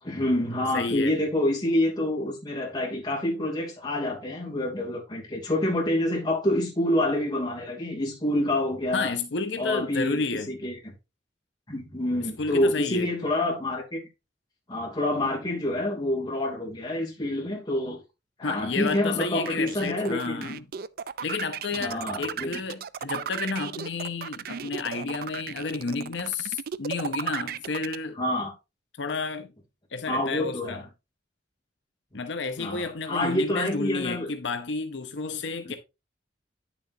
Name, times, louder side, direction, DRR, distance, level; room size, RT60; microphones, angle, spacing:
voice 1, 0.0-9.1 9.6-10.9 11.7-14.0 14.7-18.0 18.4-20.6 21.8-22.5 28.2-28.5 30.1-30.8 32.6-34.3 35.6-35.8, left 1 dB, 25° left, 2.7 m, -27 dB
voice 2, 0.7-1.2 8.9-10.5 12.2-13.1 18.4-20.7 21.2-28.2 29.0-29.5 29.9-30.8 32.1-35.8, left 4 dB, 75° left, 0.7 m, -31 dB
sound 1, 18.9-28.0, right 8 dB, 55° right, 0.4 m, -35 dB
9.6 x 7.2 x 2.7 m
head